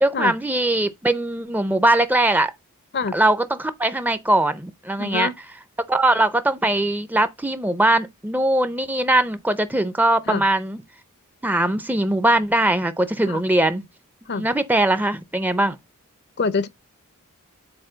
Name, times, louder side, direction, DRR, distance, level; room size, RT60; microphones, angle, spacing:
voice 1, 0.0-2.5 3.1-5.3 5.9-10.8 11.4-13.8 14.3-15.8, right 1 dB, 10° right, 0.5 m, -21 dB
voice 2, 5.0-5.3 10.3-10.4 13.3-13.4 14.3-14.5 16.4-16.7, left 4 dB, 45° left, 0.6 m, -25 dB
8.8 x 4.3 x 3.9 m
head